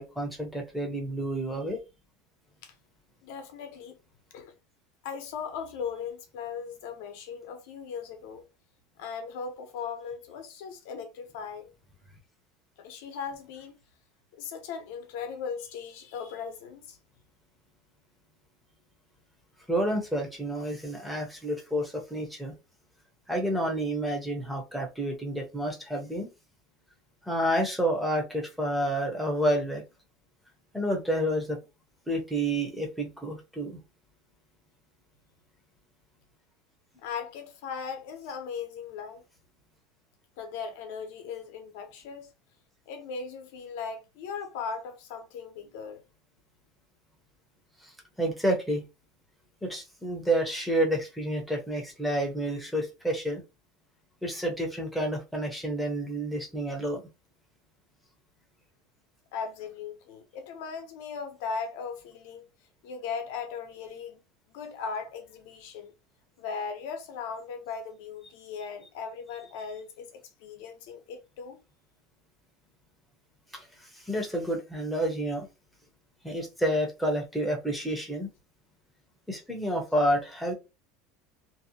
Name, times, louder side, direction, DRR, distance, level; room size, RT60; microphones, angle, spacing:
voice 1, 0.0-1.8 19.7-22.5 23.3-26.3 27.3-29.8 30.7-31.6 32.1-33.8 48.2-48.8 49.6-53.4 54.2-57.0 73.5-73.7 74.1-75.5 76.2-78.3 79.3-80.5, right 1 dB, ahead, 0.6 m, -29 dB
voice 2, 3.2-4.0 4.3-4.5 5.0-8.4 9.0-11.7 12.8-13.8 14.3-17.0 37.0-39.2 40.4-42.3 42.9-46.0 59.3-62.4 62.8-64.2 64.5-65.9 66.4-71.6, left 6 dB, 70° left, 0.7 m, -38 dB
2.6 x 2.0 x 2.7 m
cardioid pair, 165°, 0 cm